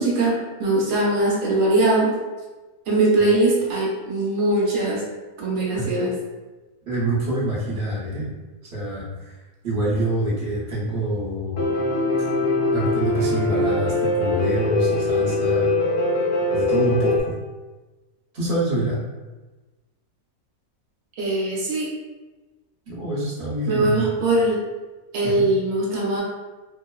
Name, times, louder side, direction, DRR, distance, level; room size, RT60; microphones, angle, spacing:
voice 1, 0.0-2.2 2.9-5.0 5.4-6.1 21.2-21.9 23.7-24.6 25.1-26.2, right 2 dB, 70° right, -4 dB, 1.0 m, -21 dB
voice 2, 6.9-8.3 8.7-9.4 9.6-11.6 12.2-12.3 12.7-15.7 16.5-17.3 18.3-19.0 22.9-24.1 25.2-25.5, right 1 dB, 45° right, -8 dB, 1.0 m, -26 dB
Piano, 11.6-17.2, left 2 dB, 65° left, 1.0 m, -22 dB
2.9 x 2.0 x 2.3 m, 1.2 s
omnidirectional pair, 1.6 m